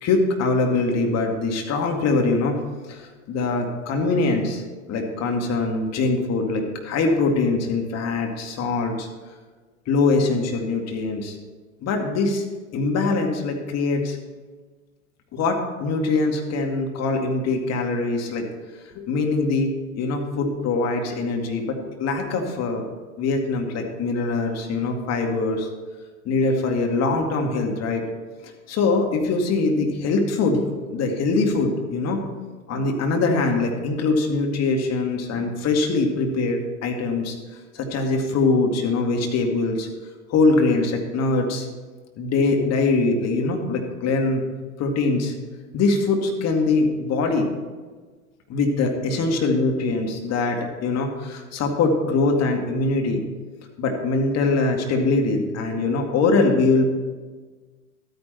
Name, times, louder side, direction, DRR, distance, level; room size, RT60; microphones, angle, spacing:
voice 1, 0.0-2.6 2.9-3.0 3.3-4.6 4.9-9.1 9.9-11.4 11.8-12.5 12.7-14.2 15.3-18.4 19.0-22.8 23.2-25.7 26.3-28.0 28.4-32.2 32.7-37.4 37.7-39.9 40.3-41.7 42.2-44.4 44.8-45.3 45.7-47.5 48.5-53.2 53.8-56.8, left 3 dB, 35° left, 3 dB, 2.2 m, -22 dB
12.5 x 9.5 x 4.4 m, 1.4 s
hypercardioid pair, 95°, 43 cm